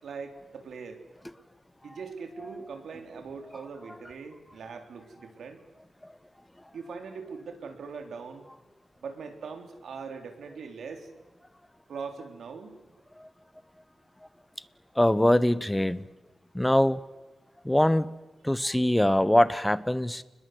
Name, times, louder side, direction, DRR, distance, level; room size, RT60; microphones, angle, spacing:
voice 1, 0.0-1.0 1.8-5.6 6.7-8.5 9.0-11.1 11.9-12.8, right 5 dB, 85° right, 5 dB, 4.0 m, -41 dB
voice 2, 15.0-16.0 16.5-17.0 17.6-18.1 18.4-20.2, left 1 dB, 5° left, 16 dB, 0.9 m, -23 dB
30.0 x 21.0 x 8.0 m, 1.1 s
wide cardioid pair, 160°, 0 cm